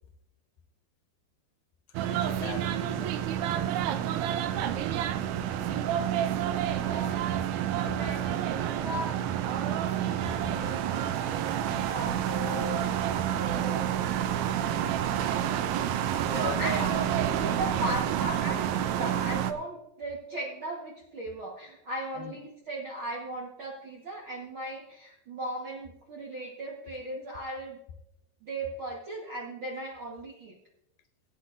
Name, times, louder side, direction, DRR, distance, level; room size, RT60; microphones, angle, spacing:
sound 1, 1.9-19.5, right 10 dB, 90° right, 1.7 m, -29 dB
voice 1, 2.1-3.2 7.9-8.0 15.8-17.2 17.9-18.0 22.1-22.4, left 8 dB, 85° left, 2.7 m, -41 dB
voice 2, 6.8-7.3 7.8-9.2 10.5-12.8 13.4-13.8 16.6-17.0 17.3-27.8 28.4-30.5, right 1 dB, 60° right, 1.3 m, -37 dB
21.0 x 8.5 x 2.5 m
omnidirectional pair, 4.3 m